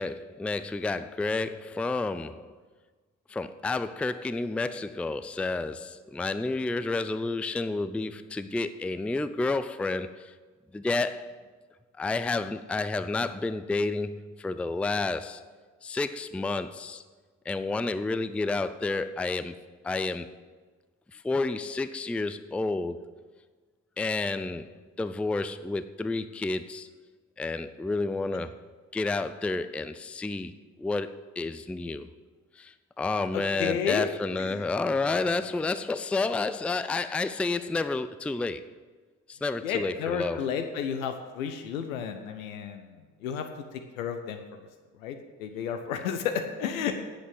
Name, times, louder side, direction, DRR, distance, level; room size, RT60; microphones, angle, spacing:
voice 1, 0.0-2.5 3.3-10.3 10.7-11.5 12.0-15.4 15.8-17.0 17.5-19.6 19.8-20.3 21.1-23.1 24.0-26.9 27.4-28.6 28.9-30.5 30.8-32.1 32.6-38.6 39.3-40.4, left 3 dB, 5° left, 12 dB, 0.4 m, -30 dB
voice 2, 33.3-34.6 39.6-43.5 43.7-44.4 45.0-46.9, left 7 dB, 75° left, 6 dB, 0.8 m, -32 dB
9.8 x 8.2 x 8.2 m, 1.4 s
figure-of-eight pair, 40°, 41 cm